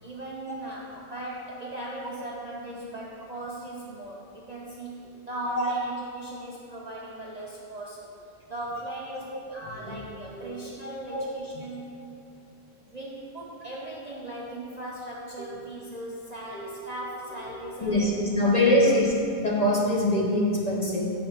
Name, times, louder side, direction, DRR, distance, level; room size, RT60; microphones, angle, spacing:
voice 1, 0.0-8.0 8.5-11.9 12.9-18.1 18.4-18.9, right 1 dB, 40° right, -5 dB, 0.7 m, -38 dB
voice 2, 17.6-19.1 19.4-21.0, left 1 dB, 30° left, -4 dB, 1.0 m, -24 dB
7.5 x 4.4 x 5.7 m, 2.8 s
omnidirectional pair, 1.4 m